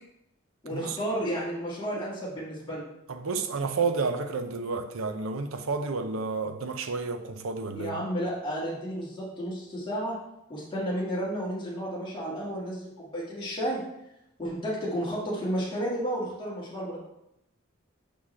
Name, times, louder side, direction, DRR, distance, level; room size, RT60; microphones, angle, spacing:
voice 1, 0.6-2.9 7.7-10.2 10.5-13.8 14.4-17.0, equal, 25° left, 1.8 m, -32 dB
voice 2, 3.1-7.9, right 4 dB, 70° right, 0.6 m, -30 dB
6.0 x 6.0 x 3.2 m
head